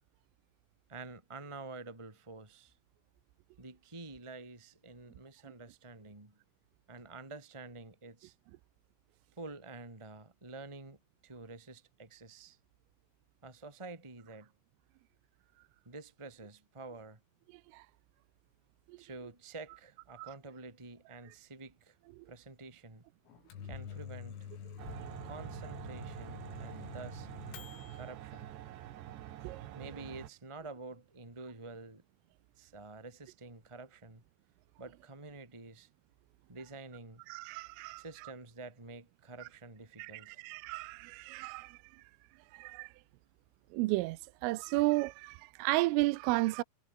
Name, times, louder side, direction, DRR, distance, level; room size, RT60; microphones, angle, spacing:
voice 1, 0.9-2.7 3.6-6.4 6.9-8.3 9.4-11.0 11.2-12.6 13.4-14.5 15.8-17.2 19.0-22.0 22.2-23.0 23.6-24.4 25.2-27.3 27.9-28.5 29.7-32.0 32.6-34.2 34.8-35.9 36.5-37.2 38.0-40.4, right 3 dB, 10° right, 2.2 m, -48 dB
Microwave oven, 23.3-28.1, left 8 dB, 85° left, 6.8 m, -47 dB
sound 1, 24.8-30.3, right 12 dB, 65° right, 3.6 m, -46 dB
voice 2, 37.3-38.3 39.4-39.5 40.0-42.0 42.5-42.9 43.7-46.6, right 21 dB, 85° right, 3.3 m, -33 dB
omnidirectional pair, 5.9 m